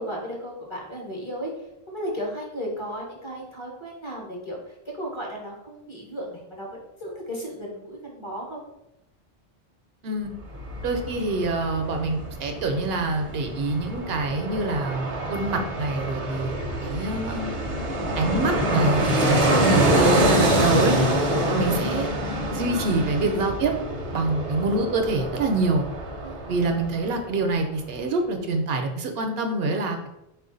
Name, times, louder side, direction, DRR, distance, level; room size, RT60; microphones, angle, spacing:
voice 1, 0.0-1.5 1.9-8.7 26.2-26.4, equal, 30° left, -3 dB, 1.0 m, -35 dB
voice 2, 10.0-10.3 10.8-16.5 16.8-17.6 18.2-21.0 21.5-22.1 22.5-23.7 24.1-25.9 26.5-30.1, right 2 dB, 75° right, 5 dB, 0.8 m, -26 dB
Fixed-wing aircraft airplane, 10.3-27.3 27.6-27.7, right 1 dB, 40° right, 0.6 m, -26 dB
4.3 x 2.4 x 3.8 m, 0.88 s
omnidirectional pair, 1.0 m